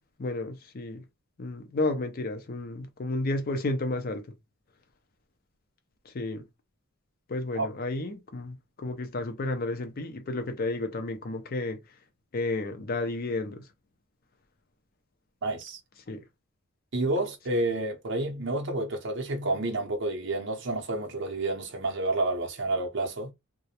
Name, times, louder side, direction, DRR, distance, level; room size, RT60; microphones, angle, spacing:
voice 1, 0.2-1.0 1.4-4.3 6.1-6.5 7.3-11.8 12.3-13.7 16.1-16.2, left 2 dB, 45° left, 0.5 m, -32 dB
voice 2, 15.4-15.8 16.9-23.3, right 2 dB, 55° right, 0.6 m, -29 dB
2.4 x 2.1 x 2.8 m
head